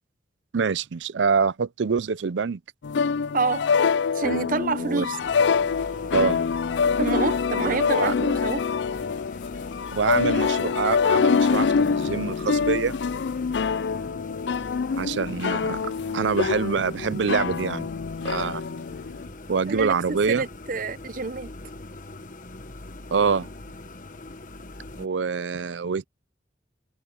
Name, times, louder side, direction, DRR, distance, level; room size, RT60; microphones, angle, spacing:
voice 1, 0.5-2.6 4.8-5.1 6.1-6.4 7.6-8.1 9.9-13.0 14.9-15.8 16.1-17.9 18.2-18.6 19.5-20.4 23.1-23.5 25.0-26.1, right 5 dB, 80° right, 0.5 m, -25 dB
sound 1, 2.8-19.3, left 5 dB, 70° left, 0.4 m, -25 dB
voice 2, 3.3-3.6 4.1-5.2 7.0-8.6 19.7-21.5, right 4 dB, 45° right, 0.7 m, -28 dB
sound 2, 5.2-25.1, left 2 dB, 45° left, 1.3 m, -41 dB
head